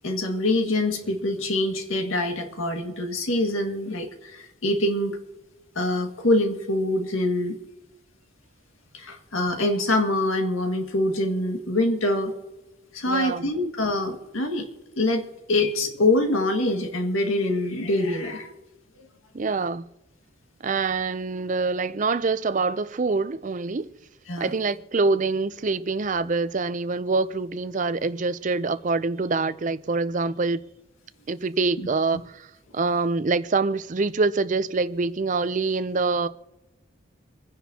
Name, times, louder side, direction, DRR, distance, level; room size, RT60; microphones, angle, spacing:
voice 1, 0.0-5.2 5.8-7.6 8.9-12.3 12.9-14.7 15.0-18.5 24.3-24.5 31.8-31.9, left 1 dB, 75° left, 1.9 m, -25 dB
voice 2, 13.1-13.5 19.3-19.8 20.6-23.9 24.4-30.6 31.3-32.5 32.7-36.3, right 3 dB, 35° right, 0.5 m, -25 dB
27.0 x 10.0 x 2.8 m
head